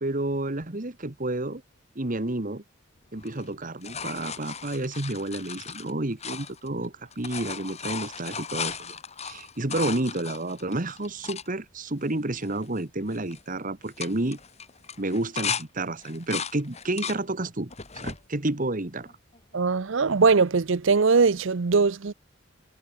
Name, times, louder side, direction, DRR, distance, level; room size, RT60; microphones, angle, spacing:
voice 1, 0.0-1.6 1.9-2.6 3.1-9.0 9.2-14.4 15.0-19.1, right 2 dB, 40° right, 1.5 m, -30 dB
sound 1, 3.2-6.9 7.1-11.5 12.0-12.1 12.4-12.8 13.1-13.4 13.8-15.6 16.0-17.2 17.7-18.2 18.8-19.6 21.2-21.3, left 6 dB, 30° left, 3.7 m, -36 dB
voice 2, 19.5-22.1, right 4 dB, 65° right, 0.6 m, -21 dB
head